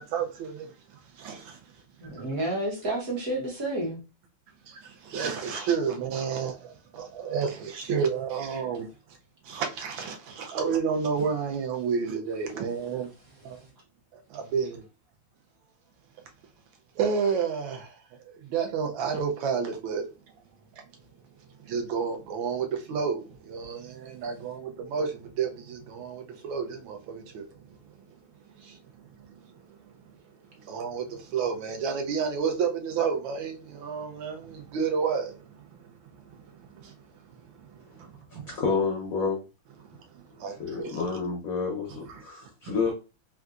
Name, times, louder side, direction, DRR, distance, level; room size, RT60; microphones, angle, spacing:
voice 1, 0.0-1.6 4.7-8.9 9.4-13.1 13.4-13.6 14.1-14.8 17.0-18.0 18.3-20.1 20.8-20.9 21.6-27.6 28.6-28.8 29.2-29.8 30.6-37.0 37.3-38.6 39.8-41.0 42.1-42.2, right 6 dB, 75° right, 1.3 m, -31 dB
voice 2, 2.0-4.0, right 1 dB, 55° right, 1.1 m, -30 dB
voice 3, 38.5-39.4 40.6-42.9, left 5 dB, 75° left, 0.8 m, -29 dB
3.8 x 2.3 x 2.4 m
omnidirectional pair, 2.2 m